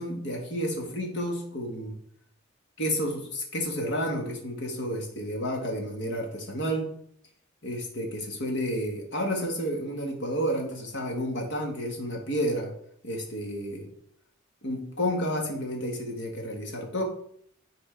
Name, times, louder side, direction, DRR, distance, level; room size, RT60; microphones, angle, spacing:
voice 1, 0.0-2.0 2.8-6.9 7.6-12.7 13.0-13.9 14.6-17.0, equal, 60° left, 1 dB, 1.8 m, -31 dB
10.0 x 4.2 x 3.9 m, 0.66 s
head